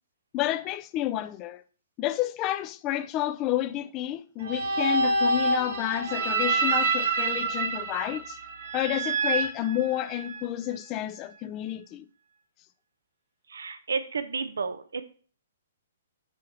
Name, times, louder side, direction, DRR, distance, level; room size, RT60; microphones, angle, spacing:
voice 1, 0.3-1.6 2.0-8.4 8.7-12.1, left 13 dB, 25° left, 0.5 m, -30 dB
sound 1, 4.4-10.4, right 3 dB, 60° right, 1.4 m, -27 dB
voice 2, 13.5-15.1, right 5 dB, 90° right, 0.8 m, -32 dB
6.5 x 6.3 x 4.2 m
hypercardioid pair, 145°, 0 cm